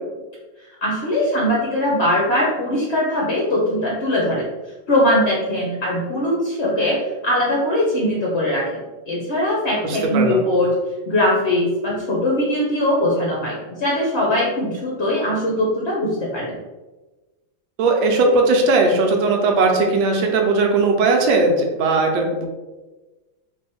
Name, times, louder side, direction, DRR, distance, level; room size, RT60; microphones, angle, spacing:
voice 1, 0.8-4.5 4.9-10.7 11.1-16.6, left 1 dB, 60° left, -4 dB, 0.7 m, -21 dB
voice 2, 9.8-10.4 17.8-22.5, right 3 dB, 85° right, 2 dB, 1.5 m, -18 dB
3.9 x 2.7 x 4.2 m, 1.2 s
omnidirectional pair, 2.1 m